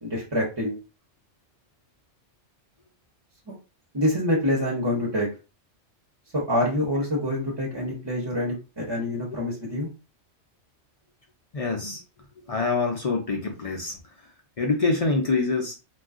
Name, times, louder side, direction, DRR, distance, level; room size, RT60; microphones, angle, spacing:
voice 1, 0.0-0.8 3.5-3.6 3.9-5.3 6.3-9.9, left 1 dB, 25° right, -4 dB, 0.7 m, -26 dB
voice 2, 11.5-12.0 12.5-14.0 14.6-15.7, left 3 dB, 55° left, 0 dB, 0.4 m, -25 dB
2.4 x 2.3 x 3.5 m, 0.31 s
omnidirectional pair, 1.3 m